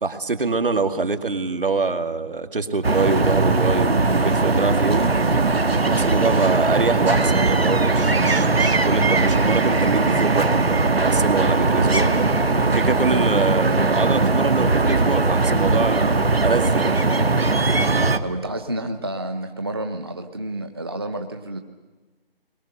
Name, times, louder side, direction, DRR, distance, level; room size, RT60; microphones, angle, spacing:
voice 1, 0.0-5.1 5.9-12.1 12.6-17.0, right 3 dB, 65° right, 8 dB, 2.5 m, -25 dB
sound 1, 2.8-18.2, right 3 dB, 85° right, 2.0 m, -19 dB
voice 2, 18.2-21.6, right 1 dB, 25° right, 6 dB, 0.8 m, -30 dB
29.5 x 22.5 x 6.6 m, 1.3 s
figure-of-eight pair, 170°, 30 cm